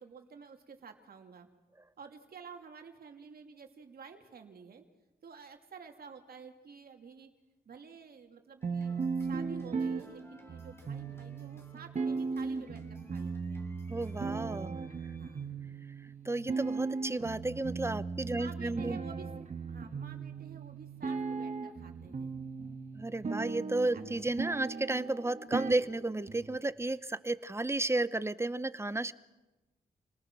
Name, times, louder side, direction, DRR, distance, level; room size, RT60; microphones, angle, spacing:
voice 1, 0.0-1.5 2.0-4.8 5.2-7.3 7.6-13.7 15.2-15.5 18.3-22.3 23.9-24.1, right 6 dB, 70° right, 5 dB, 2.7 m, -51 dB
sound 1, 8.6-15.5, left 1 dB, 15° left, 3.4 m, -59 dB
sound 2, 8.6-26.6, right 4 dB, 45° right, 1.9 m, -37 dB
voice 2, 13.9-14.8 16.2-19.0 22.9-29.1, right 2 dB, 15° right, 15 dB, 0.9 m, -33 dB
29.0 x 19.5 x 6.2 m, 1.0 s
cardioid pair, 85°, 16 cm